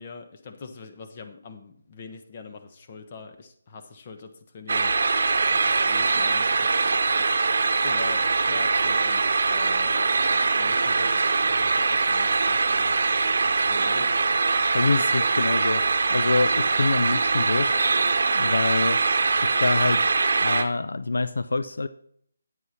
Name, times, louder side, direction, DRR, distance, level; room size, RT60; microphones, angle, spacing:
voice 1, 0.0-4.9 5.5-6.7 7.1-7.6 7.8-10.2 10.5-12.9 13.4-14.1, left 4 dB, 35° left, 7 dB, 1.2 m, -43 dB
sound 1, 4.7-20.6, right 4 dB, 60° right, 0.9 m, -22 dB
voice 2, 14.7-15.8 16.1-17.7 18.3-19.0 19.4-20.1 20.4-21.9, left 3 dB, 80° left, 13 dB, 0.5 m, -25 dB
9.6 x 8.1 x 4.5 m, 0.65 s
hypercardioid pair, 165°, 0 cm